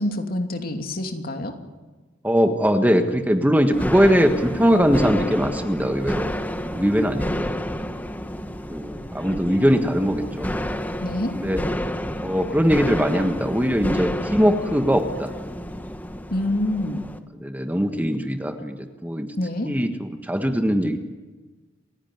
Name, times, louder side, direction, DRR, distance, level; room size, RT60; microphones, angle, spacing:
voice 1, 0.0-1.5 11.0-11.3 16.3-17.0 19.4-19.7, left 1 dB, 50° left, 5 dB, 2.8 m, -26 dB
voice 2, 2.2-6.3 6.6-7.5 8.7-10.6 11.3-11.6 12.2-15.3 17.4-19.3 19.6-21.0, equal, 10° right, 6 dB, 1.5 m, -21 dB
sound 1, 3.7-17.2, equal, 10° left, 1.3 m, -30 dB
28.5 x 16.5 x 9.5 m, 1.3 s
head